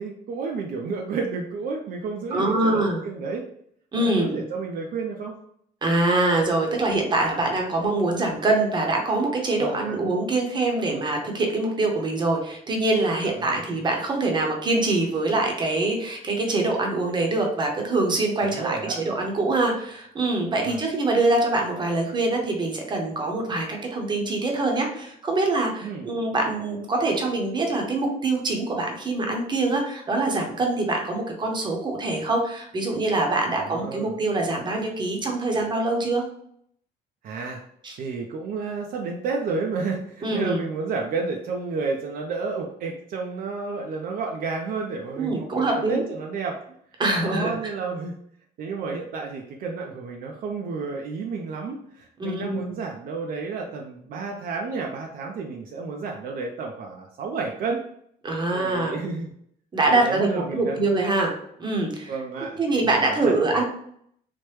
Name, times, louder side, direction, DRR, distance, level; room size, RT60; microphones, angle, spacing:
voice 1, 0.0-3.4 4.0-5.4 9.6-10.0 13.2-13.6 18.4-19.0 20.6-20.8 25.8-26.1 33.7-34.1 37.2-37.6 38.0-46.6 47.2-48.2 48.6-57.8 58.5-59.3 59.9-60.8 62.1-63.6, right 4 dB, 60° right, 1 dB, 0.4 m, -31 dB
voice 2, 2.3-3.0 3.9-4.4 5.8-36.2 37.8-38.0 40.2-40.6 45.2-46.0 47.0-47.5 52.2-52.6 58.2-59.0 59.7-61.3 61.6-62.1 62.6-63.6, right 2 dB, 25° right, 1 dB, 0.7 m, -24 dB
3.1 x 2.1 x 3.1 m, 0.69 s
cardioid pair, 110°, 17 cm